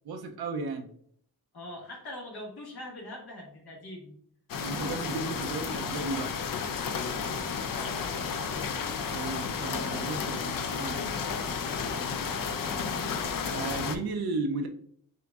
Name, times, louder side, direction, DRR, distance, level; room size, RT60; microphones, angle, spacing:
voice 1, 0.1-0.9 4.6-6.3 9.1-11.2 13.5-14.7, right 3 dB, 80° right, 4 dB, 0.6 m, -34 dB
voice 2, 1.5-4.2 7.4-8.1, left 1 dB, 85° left, -2 dB, 1.6 m, -44 dB
sound 1, 4.5-14.0, left 6 dB, 65° left, 0.5 m, -32 dB
6.4 x 2.6 x 2.3 m, 0.63 s
wide cardioid pair, 105°, 37 cm